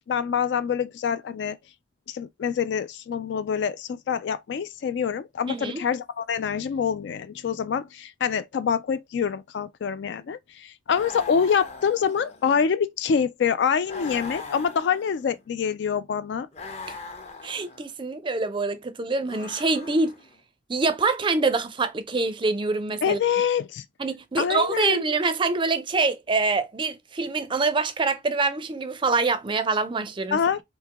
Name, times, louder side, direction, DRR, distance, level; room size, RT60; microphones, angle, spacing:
voice 1, 0.1-1.6 2.1-16.5 23.0-23.8 24.4-25.0 30.3-30.6, left 7 dB, 65° left, 0.3 m, -26 dB
voice 2, 5.5-5.8 16.9-17.0 17.4-20.1 20.7-23.2 24.0-30.4, right 3 dB, 25° right, 0.4 m, -25 dB
sound 1, 10.9-12.7 13.9-15.4 16.5-17.9 19.2-20.3, left 4 dB, 35° left, 0.7 m, -40 dB
3.6 x 2.7 x 2.8 m
head